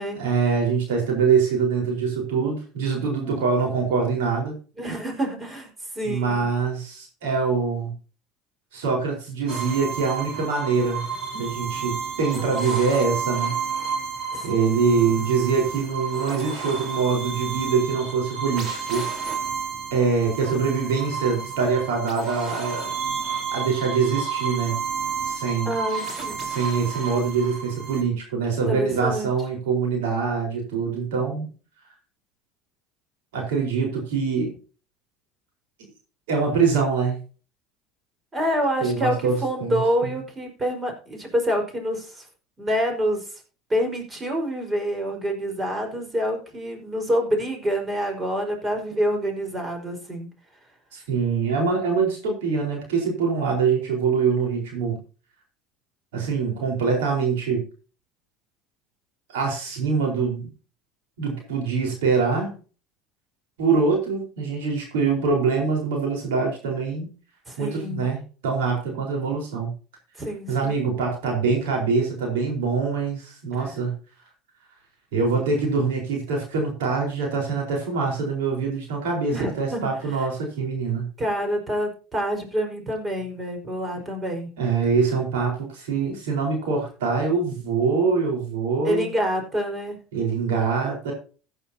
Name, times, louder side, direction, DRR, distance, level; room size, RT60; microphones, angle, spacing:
voice 1, 0.2-4.6 6.0-7.9 8.7-11.1 11.3-13.5 14.4-19.1 19.9-22.9 23.5-24.8 25.2-25.7 26.4-31.5 33.3-34.5 36.3-37.2 38.8-39.8 50.9-55.0 56.1-57.6 59.3-60.5 61.2-62.6 63.6-67.1 67.6-69.7 70.5-73.9 75.1-81.1 84.6-89.1 90.1-91.1, right 5 dB, 85° right, 1 dB, 4.5 m, -24 dB
voice 2, 4.8-5.7 5.9-6.4 14.3-14.5 25.6-26.5 28.7-29.3 38.3-42.3 42.6-43.2 43.7-50.3 67.5-68.1 70.2-70.9 73.5-73.8 79.3-80.3 81.2-84.5 88.8-90.0, equal, 25° right, 3 dB, 4.8 m, -27 dB
sound 1, 9.5-28.0, right 5 dB, 45° right, 4.1 m, -31 dB
16.0 x 9.1 x 2.9 m, 0.37 s
hypercardioid pair, 85°, 0 cm